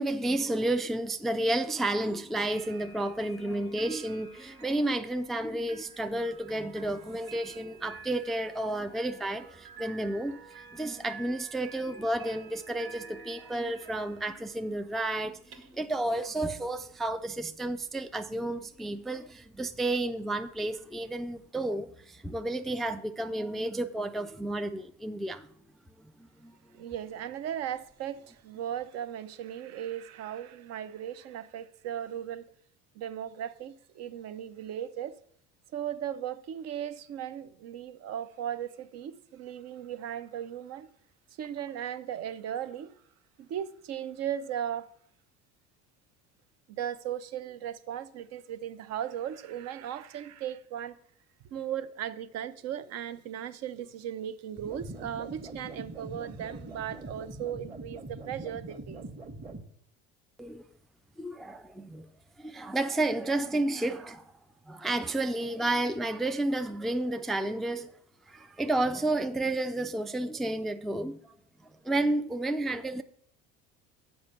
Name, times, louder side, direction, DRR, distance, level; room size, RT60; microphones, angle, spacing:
voice 1, 0.0-10.4 10.7-25.5 26.0-26.6 60.4-60.6 61.2-62.1 62.4-64.3 64.7-68.0 68.3-71.3 71.6-73.0, right 1 dB, ahead, 0.3 m, -31 dB
sound 1, 2.5-21.5, right 5 dB, 80° right, 1.1 m, -51 dB
voice 2, 26.7-32.5 32.9-35.2 35.7-40.9 41.4-42.9 43.4-44.9 46.7-51.0 51.5-59.0, right 10 dB, 60° right, 0.6 m, -37 dB
sound 2, 54.6-59.6, right 2 dB, 25° right, 0.9 m, -43 dB
7.1 x 5.2 x 6.5 m
supercardioid pair, 95°, 30 cm